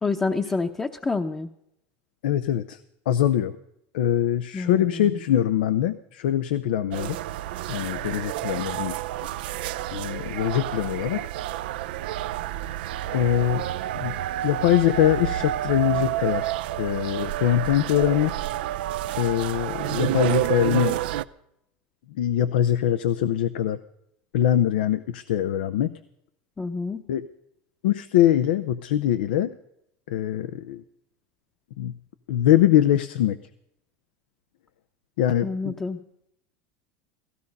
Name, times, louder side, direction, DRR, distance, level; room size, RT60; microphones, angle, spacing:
voice 1, 0.0-1.5 4.5-5.2 26.6-27.0 35.4-36.0, left 3 dB, 15° left, 3 dB, 0.8 m, -28 dB
voice 2, 2.2-2.8 3.1-3.5 3.9-7.2 7.7-9.0 9.9-11.2 13.1-13.6 13.9-14.2 14.4-16.5 16.8-18.3 19.2-21.0 22.2-23.8 24.3-25.9 27.1-27.3 27.8-29.5 30.1-30.8 31.8-31.9 32.3-33.4 35.2-35.7, left 11 dB, 85° left, 13 dB, 0.6 m, -23 dB
sound 1, 6.9-21.2, right 14 dB, 80° right, 0.5 m, -29 dB
17.0 x 15.0 x 5.3 m, 0.78 s
supercardioid pair, 115°, 5 cm